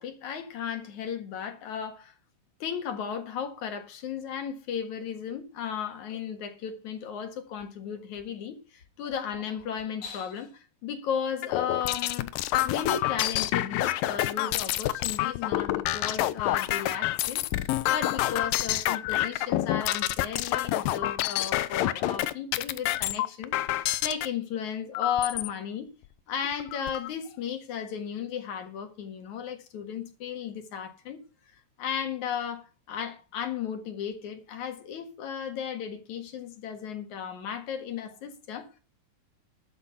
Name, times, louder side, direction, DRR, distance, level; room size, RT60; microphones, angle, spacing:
voice 1, 0.0-2.1 2.6-12.3 12.6-23.6 24.0-25.9 26.3-31.2 31.8-38.8, left 8 dB, 55° left, 2.5 m, -35 dB
sound 1, 11.4-24.3 24.9-25.5 26.0-26.1 26.4-27.1, left 15 dB, 80° left, 2.1 m, -28 dB
12.5 x 8.1 x 5.6 m
omnidirectional pair, 4.7 m